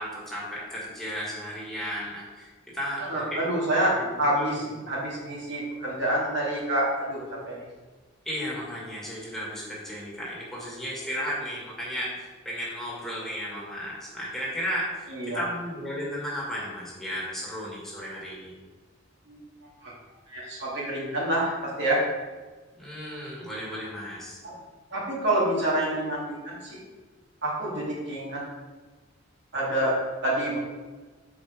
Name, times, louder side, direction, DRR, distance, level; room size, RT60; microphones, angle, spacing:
voice 1, 0.0-3.5 4.0-4.6 8.2-18.5 22.8-24.4, equal, ahead, -6 dB, 2.1 m, -34 dB
voice 2, 3.1-7.6 15.1-15.4 19.3-19.4 19.8-19.9 20.3-22.0 24.4-24.5 24.9-26.8 27.4-28.4 29.5-30.6, right 1 dB, 60° right, -5 dB, 2.3 m, -27 dB
7.3 x 4.9 x 5.1 m, 1.4 s
head